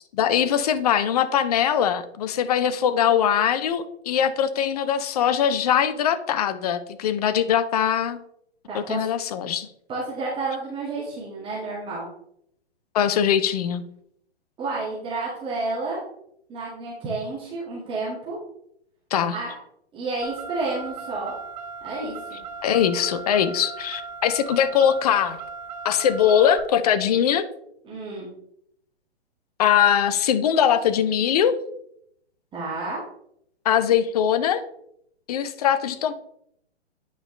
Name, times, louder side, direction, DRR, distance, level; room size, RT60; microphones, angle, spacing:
voice 1, 0.1-8.2 8.7-9.7 12.9-13.9 19.1-19.4 22.6-25.4 25.8-27.5 29.6-31.6 33.6-34.6 35.3-36.1, left 9 dB, 35° left, 12 dB, 0.6 m, -21 dB
voice 2, 8.7-9.1 9.9-12.1 14.6-16.0 16.5-18.4 19.3-19.5 19.9-21.3 21.8-22.4 27.8-28.3 32.5-33.0, right 3 dB, 15° right, -6 dB, 1.7 m, -30 dB
Car, 20.2-26.6, right 5 dB, 40° right, 0.9 m, -37 dB
8.9 x 4.9 x 3.1 m, 0.73 s
figure-of-eight pair, 120°, 33 cm